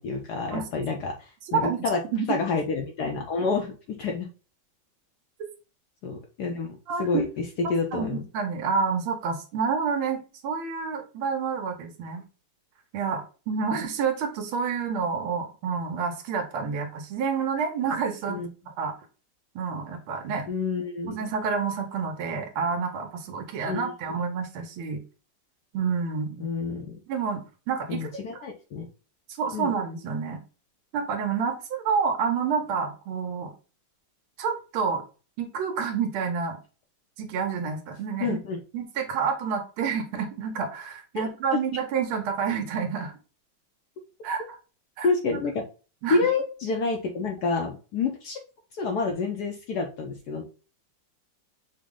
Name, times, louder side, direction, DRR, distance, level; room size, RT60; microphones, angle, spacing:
voice 1, 0.0-2.0 2.3-4.3 6.0-7.4 7.7-8.2 18.3-18.5 20.5-21.2 23.7-23.8 24.1-24.2 26.4-27.0 27.9-28.9 29.5-29.7 38.2-38.6 41.1-41.2 45.0-45.6 46.1-48.4 48.7-50.4, left 4 dB, 75° left, 2 dB, 0.9 m, -28 dB
voice 2, 1.5-1.8 2.1-2.3 6.9-7.2 7.6-12.2 12.9-18.4 18.8-18.9 19.5-20.5 21.1-25.0 25.7-26.5 27.1-28.1 29.4-30.4 30.9-33.5 34.4-35.0 35.4-36.6 37.2-38.4 38.7-43.1 44.2-44.4 45.0-45.1 46.0-46.2, right 6 dB, 80° right, 3 dB, 1.6 m, -28 dB
5.1 x 2.0 x 3.5 m, 0.35 s
omnidirectional pair, 2.3 m